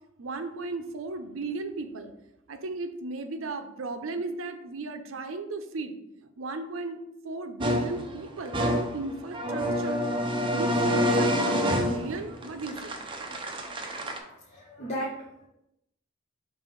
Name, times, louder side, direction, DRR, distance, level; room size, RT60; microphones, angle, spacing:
voice 1, 0.2-2.1 2.5-5.9 6.2-10.1 10.5-13.0, right 3 dB, 75° right, 8 dB, 0.6 m, -35 dB
sound 1, 7.6-14.2, equal, 25° right, 0.7 m, -28 dB
voice 2, 14.2-15.5, equal, 30° left, -7 dB, 1.0 m, -36 dB
5.4 x 3.4 x 5.2 m, 0.86 s
head